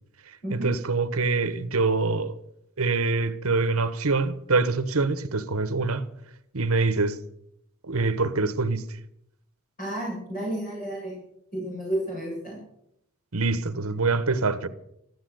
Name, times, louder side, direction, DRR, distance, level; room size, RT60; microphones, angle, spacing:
voice 1, 0.6-2.3 2.8-6.1 6.5-7.2 7.9-8.8 13.3-14.7, right 3 dB, 70° right, 1.2 m, -25 dB
voice 2, 9.8-11.1 11.5-12.6, right 1 dB, 40° left, 7.6 m, -31 dB
15.0 x 12.5 x 7.8 m
head